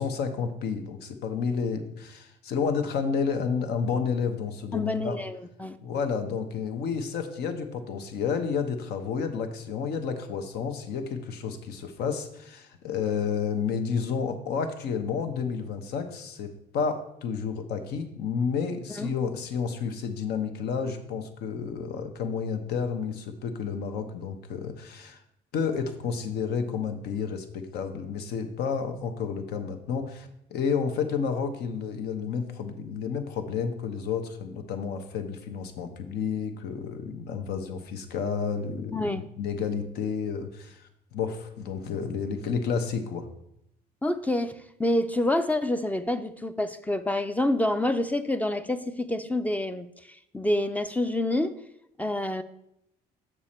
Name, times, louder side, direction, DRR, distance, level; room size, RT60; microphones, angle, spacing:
voice 1, 0.0-5.2 5.8-25.2 25.5-43.3, left 6 dB, 75° left, 7 dB, 1.0 m, -31 dB
voice 2, 4.7-5.8 19.0-19.1 38.9-39.3 44.0-49.9 50.3-51.6 52.0-52.4, left 1 dB, 10° left, 10 dB, 0.4 m, -27 dB
7.0 x 6.2 x 4.3 m, 0.80 s
cardioid pair, 110°, 17 cm